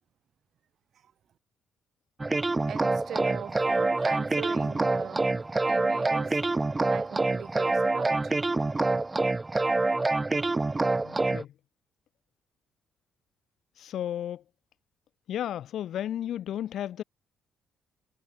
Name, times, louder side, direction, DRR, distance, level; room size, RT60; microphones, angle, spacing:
sound 1, 2.2-11.4, right 3 dB, 20° right, 1.3 m, -26 dB
voice 1, 2.7-6.4 6.8-8.3, right 9 dB, 60° right, 7.1 m, -40 dB
voice 2, 11.0-11.5 13.8-14.4 15.3-17.0, left 11 dB, 70° left, 3.1 m, -33 dB
cardioid pair, 90°, 0 cm